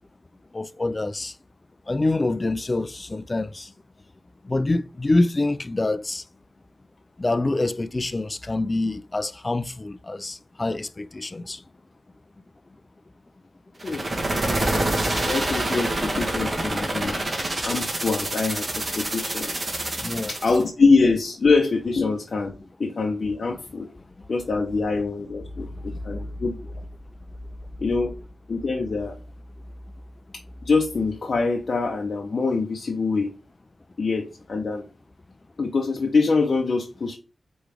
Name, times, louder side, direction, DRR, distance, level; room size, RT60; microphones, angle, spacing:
voice 1, 0.5-1.3 1.9-3.7 4.4-6.2 7.2-11.6 17.2-17.3 20.0-20.3 26.1-26.2, left 2 dB, 30° left, 0.3 m, -26 dB
sound 1, 13.8-20.6, right 1 dB, 40° right, 1.2 m, -27 dB
voice 2, 15.3-17.2 17.6-19.6 20.3-23.9 24.3-26.6 27.8-28.1 28.5-29.2 30.6-33.3 34.0-34.9 35.6-37.2, left 4 dB, 60° left, 0.6 m, -24 dB
4.7 x 3.1 x 3.4 m
cardioid pair, 65°, 0 cm